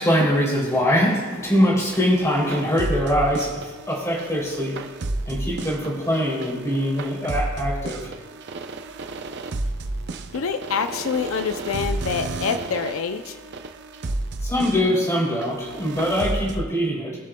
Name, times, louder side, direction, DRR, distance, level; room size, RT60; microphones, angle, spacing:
voice 1, 0.0-4.8 5.3-8.1 14.4-17.2, equal, 15° left, -4 dB, 2.9 m, -23 dB
sound 1, 1.9-16.6, right 2 dB, 60° right, 0.6 m, -32 dB
voice 2, 10.3-13.4, left 6 dB, 90° left, 9 dB, 0.5 m, -26 dB
20.0 x 7.4 x 2.2 m, 1.3 s
head